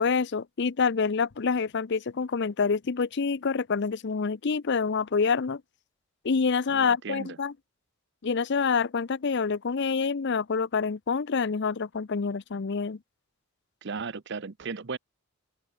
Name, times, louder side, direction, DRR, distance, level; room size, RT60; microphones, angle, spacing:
voice 1, 0.0-5.6 6.2-7.5 8.2-13.0, left 5 dB, 50° left, 0.6 m, -27 dB
voice 2, 6.7-7.4 13.8-15.0, right 5 dB, 50° right, 0.7 m, -36 dB
head